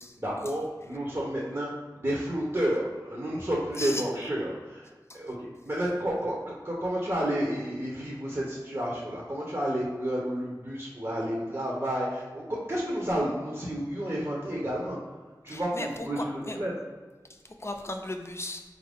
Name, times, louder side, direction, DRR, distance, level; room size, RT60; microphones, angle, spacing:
voice 1, 0.2-4.9 5.1-5.3 5.7-15.0 15.4-16.8, right 1 dB, 40° right, -4 dB, 0.8 m, -31 dB
voice 2, 15.5-15.9 16.2-16.6 17.6-18.6, left 2 dB, 35° left, 4 dB, 0.5 m, -35 dB
4.4 x 2.6 x 3.4 m, 1.4 s
wide cardioid pair, 45°, 8 cm